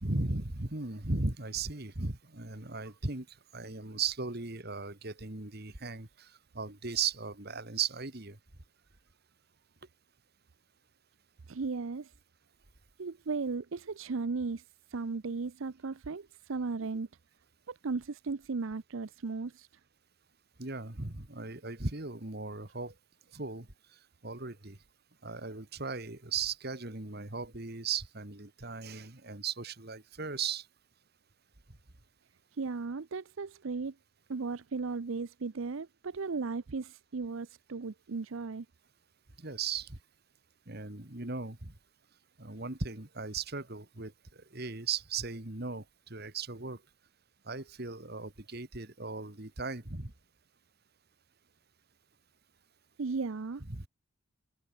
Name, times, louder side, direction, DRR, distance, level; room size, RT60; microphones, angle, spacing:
voice 1, 0.0-3.3 3.5-8.4 20.6-22.9 23.3-23.7 24.2-24.8 25.2-30.7 39.4-40.0 40.7-41.7 42.4-46.8 47.5-50.1 53.7-53.9, right 4 dB, 50° right, 2.0 m, -37 dB
voice 2, 11.5-12.1 13.0-14.6 14.9-17.1 17.7-19.7 32.6-33.9 34.3-38.7 53.0-53.6, right 4 dB, 70° right, 0.6 m, -36 dB
head